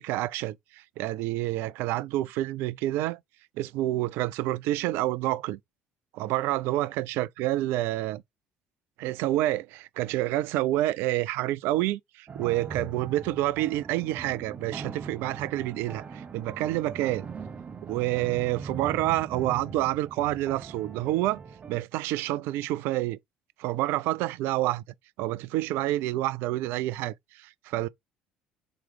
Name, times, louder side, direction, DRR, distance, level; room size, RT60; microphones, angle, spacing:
voice 1, 0.0-3.2 3.6-5.6 6.1-8.2 9.0-17.3 17.8-21.4 21.7-23.2 23.6-24.8 25.2-27.9, right 16 dB, 55° right, 0.3 m, -28 dB
sound 1, 12.3-21.8, right 5 dB, 30° right, 0.7 m, -41 dB
4.4 x 3.0 x 3.5 m
figure-of-eight pair, 55°, 5 cm